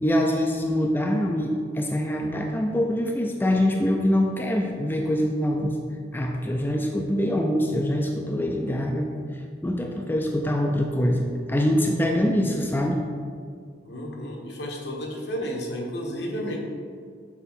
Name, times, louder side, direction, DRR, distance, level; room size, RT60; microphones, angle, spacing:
voice 1, 0.0-5.7 6.1-9.1 9.6-13.0, equal, 10° left, 1 dB, 0.4 m, -24 dB
voice 2, 13.8-16.6, equal, 70° left, 0 dB, 1.1 m, -32 dB
7.0 x 4.5 x 4.3 m, 2.1 s
head